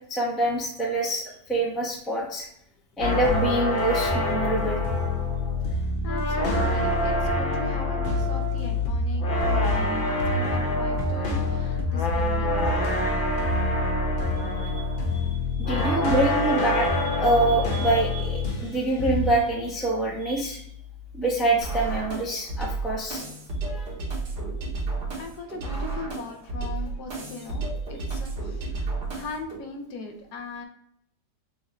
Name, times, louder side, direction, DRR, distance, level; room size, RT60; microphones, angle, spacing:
voice 1, 0.1-2.5 3.0-4.8 14.4-14.8 15.1-20.6 21.1-23.3 23.7-23.9, right 2 dB, ahead, -2 dB, 0.4 m, -26 dB
sound 1, 3.0-18.7 19.0-19.4, left 1 dB, 50° left, 0.6 m, -25 dB
sound 2, 3.0-22.3, left 10 dB, 70° right, 0.9 m, -45 dB
voice 2, 5.6-12.8 25.2-30.7, left 3 dB, 75° left, 5 dB, 1.3 m, -39 dB
sound 3, 21.6-29.6, right 3 dB, 90° right, 1.8 m, -32 dB
6.2 x 2.6 x 3.0 m, 0.73 s
omnidirectional pair, 1.8 m